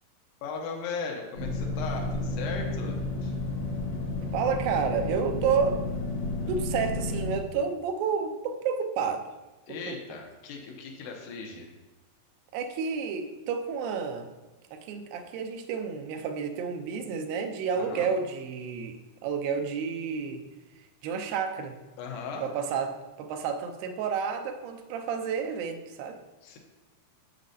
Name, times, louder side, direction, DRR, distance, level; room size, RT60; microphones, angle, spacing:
voice 1, 0.4-3.3 9.7-11.7 17.7-18.1 22.0-22.4 26.4-26.6, left 5 dB, 75° left, 1 dB, 2.5 m, -37 dB
sound 1, 1.4-7.4, left 2 dB, 50° left, 1.2 m, -32 dB
voice 2, 4.3-5.8 6.5-9.3 9.7-10.0 12.5-14.3 14.7-20.4 21.0-21.8 22.4-26.2, right 6 dB, 85° right, 5 dB, 2.4 m, -30 dB
7.7 x 7.3 x 2.7 m, 1.1 s
omnidirectional pair, 4.0 m